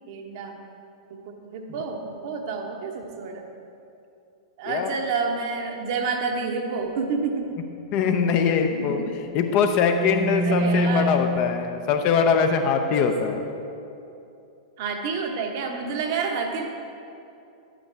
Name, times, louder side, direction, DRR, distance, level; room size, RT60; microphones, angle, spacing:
voice 1, 0.1-0.6 1.1-3.5 4.6-7.5 8.7-9.1 10.4-11.1 13.0-13.2 14.8-16.7, right 5 dB, 45° right, 3 dB, 1.0 m, -29 dB
voice 2, 7.9-9.0 9.3-13.4, left 6 dB, 35° left, 5 dB, 0.7 m, -22 dB
sound 1, 9.2-11.8, equal, 15° right, 0.4 m, -26 dB
11.0 x 8.6 x 3.4 m, 2.7 s
figure-of-eight pair, 100°, 3 cm